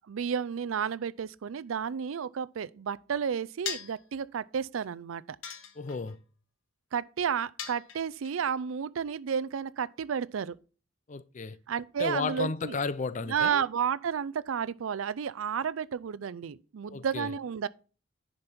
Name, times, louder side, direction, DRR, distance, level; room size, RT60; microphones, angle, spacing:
voice 1, 0.1-5.4 6.9-10.6 11.7-12.7 13.2-17.7, right 7 dB, 85° right, 0.4 m, -32 dB
sound 1, 3.7-4.1 5.4-6.1 7.6-8.3, left 7 dB, 75° left, 1.2 m, -39 dB
voice 2, 5.8-6.2 11.1-11.6 12.0-13.6 16.9-17.3, left 4 dB, 40° left, 0.5 m, -33 dB
10.5 x 5.2 x 4.2 m
head